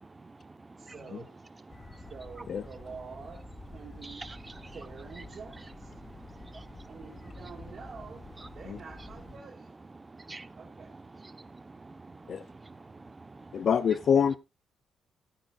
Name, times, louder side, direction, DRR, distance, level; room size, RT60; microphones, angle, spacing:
voice 1, 0.0-0.4 0.8-0.9 4.0-4.7 6.0-6.9 10.1-10.6 11.3-13.7, right 3 dB, 20° right, 1.0 m, -48 dB
voice 2, 0.8-1.3 2.1-3.4 3.7-4.3 4.7-5.9 6.9-8.2 8.5-9.7 10.6-10.9, right 5 dB, 50° right, 1.9 m, -47 dB
sound 1, 1.7-9.4, left 2 dB, 25° left, 2.5 m, -49 dB
voice 3, 13.5-14.4, left 7 dB, 55° left, 0.6 m, -25 dB
16.5 x 9.1 x 2.5 m
cardioid pair, 90°, 0 cm